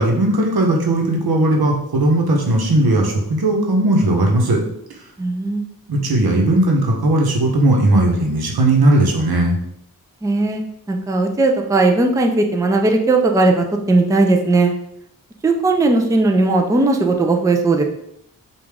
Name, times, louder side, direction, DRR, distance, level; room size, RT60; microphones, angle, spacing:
voice 1, 0.0-4.6 5.9-9.6, right 1 dB, 80° right, 1 dB, 1.0 m, -17 dB
voice 2, 5.2-5.6 10.2-10.6 10.9-14.7 15.4-17.8, right 2 dB, 10° right, 3 dB, 0.4 m, -17 dB
4.9 x 2.4 x 3.5 m, 0.75 s
wide cardioid pair, 100°, 37 cm